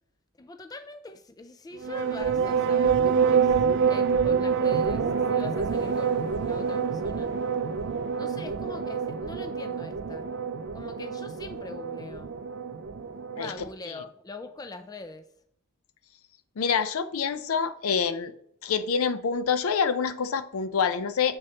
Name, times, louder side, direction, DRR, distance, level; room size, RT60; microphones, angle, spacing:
voice 1, 0.4-3.5 3.9-7.3 8.1-10.3 10.7-12.4 13.3-15.2, left 2 dB, 15° left, 9 dB, 0.3 m, -42 dB
sound 1, 1.8-13.7, right 6 dB, 55° right, 0.4 m, -27 dB
voice 2, 16.6-18.3 18.6-21.4, left 6 dB, 70° left, 12 dB, 0.5 m, -26 dB
7.1 x 6.4 x 2.9 m, 0.68 s
head